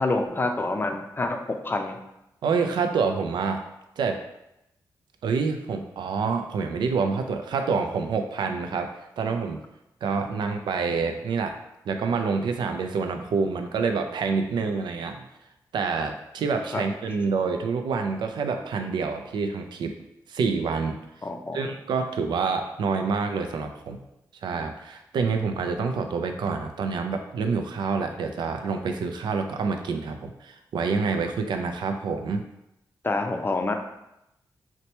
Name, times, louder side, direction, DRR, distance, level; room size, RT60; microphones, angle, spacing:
voice 1, 0.0-1.4 1.6-2.0 16.7-16.8 21.2-21.6 33.0-33.7, left 2 dB, 30° left, 4 dB, 0.5 m, -27 dB
voice 2, 2.4-3.6 4.0-4.2 5.2-9.6 10.0-11.6 11.9-15.2 15.7-20.0 20.3-21.0 21.5-24.0 24.4-32.5, right 5 dB, 80° right, 6 dB, 0.4 m, -27 dB
2.8 x 2.2 x 4.1 m, 0.87 s
cardioid pair, 60°, 8 cm